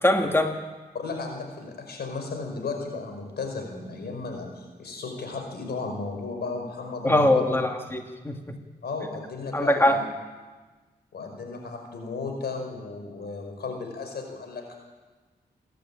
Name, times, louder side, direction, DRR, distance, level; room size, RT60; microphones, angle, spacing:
voice 1, 0.0-0.6 7.0-8.6 9.5-10.0, left 1 dB, 15° left, 3 dB, 2.4 m, -22 dB
voice 2, 0.9-7.6 8.8-10.0 11.1-14.8, left 4 dB, 80° left, 4 dB, 5.2 m, -34 dB
27.5 x 12.0 x 8.8 m, 1.3 s
cardioid pair, 50°, 17 cm